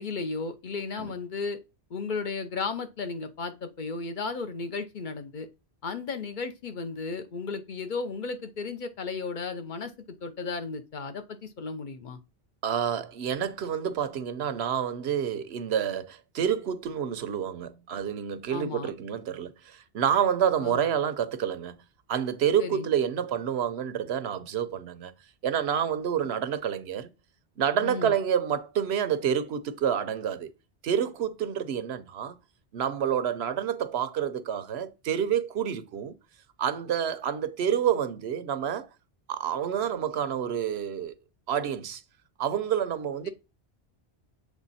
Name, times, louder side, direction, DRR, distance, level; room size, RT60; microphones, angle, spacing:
voice 1, 0.0-1.6 1.9-5.5 5.8-12.2 18.5-18.9 20.6-20.8 22.6-22.9 27.8-28.1 43.2-43.3, left 4 dB, 50° left, 0.9 m, -34 dB
voice 2, 12.6-21.8 22.1-25.1 25.4-27.1 27.6-30.5 30.8-32.3 32.7-36.1 36.6-38.9 39.3-41.1 41.5-42.0 42.4-43.3, right 8 dB, 75° right, 0.9 m, -28 dB
7.3 x 3.4 x 4.1 m
omnidirectional pair, 1.1 m